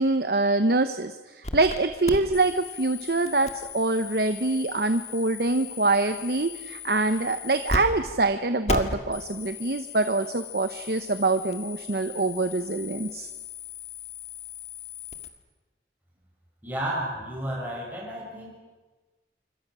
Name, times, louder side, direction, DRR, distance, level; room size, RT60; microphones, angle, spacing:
voice 1, 0.0-13.3, right 2 dB, 60° right, 9 dB, 1.0 m, -25 dB
sound 1, 1.4-1.8 2.0-7.8 8.0-8.2 8.7-15.3, left 3 dB, 40° left, 1.8 m, -36 dB
voice 2, 16.6-18.6, right 1 dB, 10° right, -4 dB, 6.5 m, -32 dB
26.5 x 24.5 x 6.2 m, 1.3 s
head